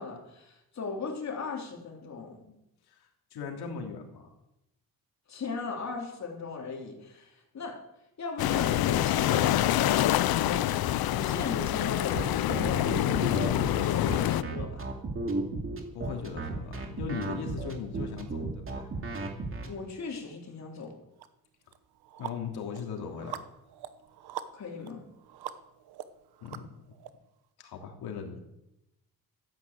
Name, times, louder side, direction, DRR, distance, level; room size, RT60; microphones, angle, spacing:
voice 1, 0.0-2.5 5.3-7.8 8.2-9.9 10.3-10.7 11.1-14.9 19.6-21.0 24.5-25.1, left 4 dB, 45° left, 1 dB, 3.3 m, -38 dB
voice 2, 2.9-4.3 15.9-18.9 22.2-23.4 26.4-26.7 27.6-28.4, left 5 dB, 90° left, 2 dB, 3.1 m, -38 dB
sound 1, 8.4-14.4, left 13 dB, 70° left, 0.6 m, -26 dB
sound 2, 12.1-19.7, right 3 dB, 35° right, 2.5 m, -34 dB
sound 3, 21.2-21.3 21.7-27.1, right 11 dB, 85° right, 1.1 m, -43 dB
14.0 x 9.5 x 8.0 m, 0.86 s
cardioid pair, 130°, 37 cm